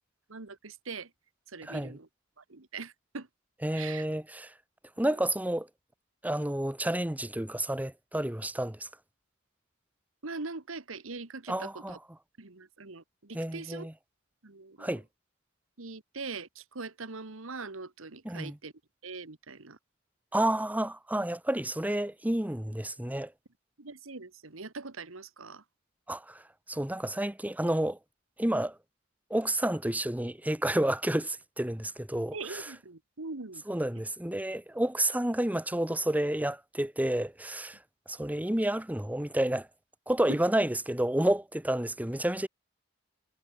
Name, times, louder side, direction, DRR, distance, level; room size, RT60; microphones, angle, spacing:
voice 1, 0.3-1.1 1.5-2.1 2.4-3.3 3.7-4.1 5.0-5.3 10.2-12.0 12.4-13.9 14.4-15.0 15.8-18.7 19.0-19.8 23.8-25.6 32.3-33.6 40.3-40.4, right 4 dB, 70° right, 1.6 m, -42 dB
voice 2, 3.6-4.5 5.0-5.7 6.2-8.9 11.5-12.0 13.3-13.9 14.8-15.0 18.2-18.5 20.3-23.3 26.1-28.0 28.4-28.8 29.3-32.6 33.7-37.8 38.1-39.7 40.1-42.5, right 1 dB, 10° right, 1.1 m, -30 dB
head